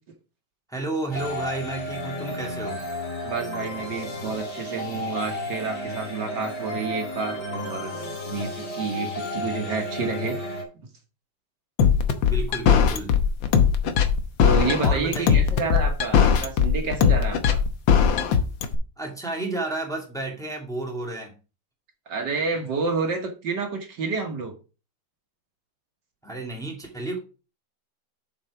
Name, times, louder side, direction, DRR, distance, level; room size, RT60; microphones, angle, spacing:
voice 1, 0.7-2.8 12.2-13.2 14.8-15.4 19.0-21.3 26.2-27.2, right 2 dB, ahead, 0 dB, 2.1 m, -31 dB
sound 1, 1.1-10.6, left 1 dB, 60° left, 3.0 m, -33 dB
voice 2, 3.3-10.4 14.4-17.6 22.1-24.5, right 4 dB, 65° right, 3 dB, 2.0 m, -29 dB
sound 2, 11.8-18.8, left 7 dB, 80° left, 1.7 m, -19 dB
7.3 x 5.6 x 4.8 m, 0.33 s
omnidirectional pair, 2.1 m